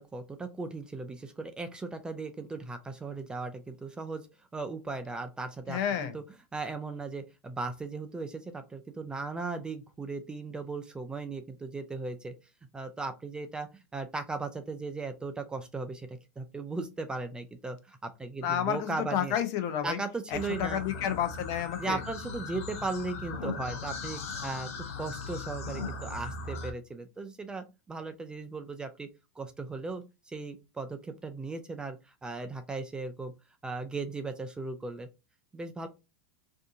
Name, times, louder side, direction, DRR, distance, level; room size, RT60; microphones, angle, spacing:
voice 1, 0.0-4.3 4.5-6.2 6.5-12.3 12.7-19.3 19.8-20.8 21.8-29.1 29.4-33.3 33.6-35.1 35.5-35.9, right 3 dB, 10° right, 0.4 m, -37 dB
voice 2, 5.7-6.2 18.4-20.0 20.3-22.0, left 9 dB, 50° left, 0.7 m, -30 dB
sound 1, 20.3-26.7, left 4 dB, 80° left, 0.8 m, -38 dB
2.7 x 2.5 x 3.6 m
supercardioid pair, 125°, 8 cm